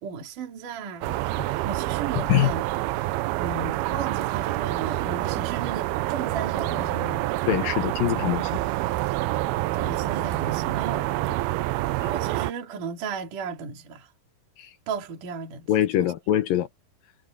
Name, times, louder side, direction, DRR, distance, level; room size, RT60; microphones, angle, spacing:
voice 1, 0.0-1.2 1.6-2.7 3.4-7.2 9.7-11.1 12.0-14.1 14.9-15.7 16.0-16.1, right 5 dB, 60° right, 4.1 m, -35 dB
sound 1, 1.0-12.5, right 17 dB, 90° right, 2.6 m, -27 dB
voice 2, 2.2-2.5 7.5-8.6 14.6-14.7 15.7-16.7, left 13 dB, 75° left, 2.5 m, -23 dB
omnidirectional pair, 4.4 m